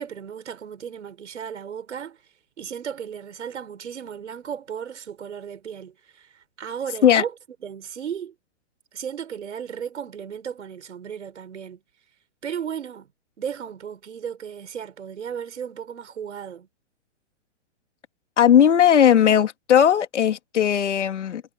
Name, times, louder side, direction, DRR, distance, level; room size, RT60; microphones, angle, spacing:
voice 1, 0.0-2.2 2.6-7.3 7.6-8.3 8.9-11.8 12.4-13.1 13.4-16.7, right 8 dB, 85° right, 7.0 m, -35 dB
voice 2, 18.4-21.4, left 9 dB, 85° left, 2.4 m, -17 dB
hypercardioid pair, 155°, 35 cm